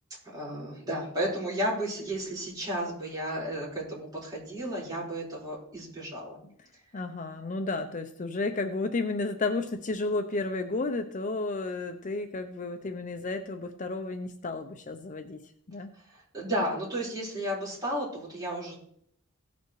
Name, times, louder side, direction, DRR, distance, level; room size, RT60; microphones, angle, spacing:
voice 1, 0.3-6.4 15.9-18.7, right 1 dB, 20° right, -6 dB, 4.6 m, -33 dB
voice 2, 6.9-15.4 15.7-15.9, left 3 dB, 35° left, 7 dB, 0.5 m, -32 dB
17.5 x 6.9 x 3.2 m, 0.66 s
head